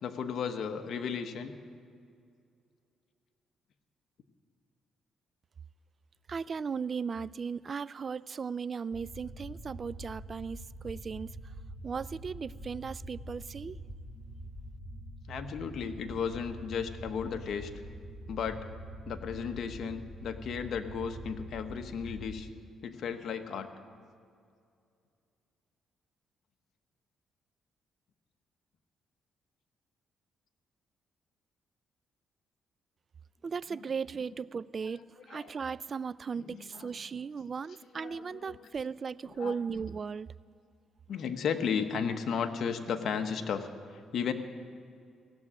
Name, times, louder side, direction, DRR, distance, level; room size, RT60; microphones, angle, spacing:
voice 1, 0.0-1.6 15.3-17.7 18.3-18.7 19.0-22.5 22.8-23.7 33.7-33.8 34.8-35.5 36.4-36.9 37.7-38.7 39.2-39.7 41.1-44.3, left 6 dB, 65° left, 7 dB, 1.0 m, -35 dB
voice 2, 6.3-11.3 11.8-13.8 33.4-35.0 35.3-40.3, right 5 dB, 40° right, 19 dB, 0.3 m, -37 dB
sound 1, 8.9-22.3, right 1 dB, 5° right, 3.4 m, -45 dB
16.5 x 7.4 x 9.9 m, 2.3 s
cardioid pair, 90°, 0 cm